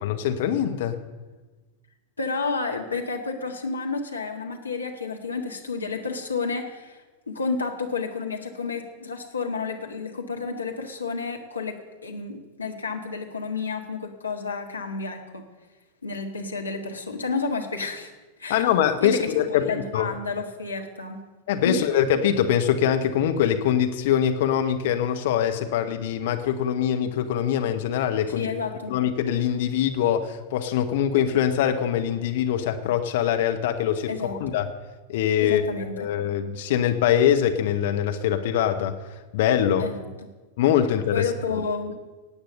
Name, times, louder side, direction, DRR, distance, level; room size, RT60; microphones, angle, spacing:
voice 1, 0.0-1.0 18.5-20.1 21.5-28.5 28.9-34.7 35.1-39.9 40.6-41.2 41.5-41.6, left 9 dB, 55° left, 6 dB, 1.1 m, -23 dB
voice 2, 2.2-15.4 16.0-18.1 18.4-18.6 19.0-21.2 21.6-21.8 28.4-29.0 34.1-34.5 35.4-36.1 39.8-40.1 41.1-42.0, left 4 dB, 80° left, 2 dB, 1.7 m, -30 dB
18.5 x 8.8 x 6.6 m, 1.2 s
figure-of-eight pair, 90°, 0 cm